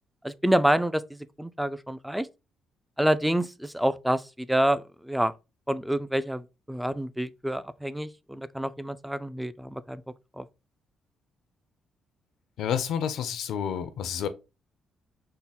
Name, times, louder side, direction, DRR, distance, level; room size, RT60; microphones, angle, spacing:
voice 1, 0.2-2.3 3.0-5.3 5.7-10.0 10.4-10.5, right 1 dB, 5° right, 0.3 m, -27 dB
voice 2, 12.6-14.3, left 8 dB, 75° left, 0.5 m, -29 dB
3.7 x 2.1 x 4.0 m
cardioid pair, 90°, 0 cm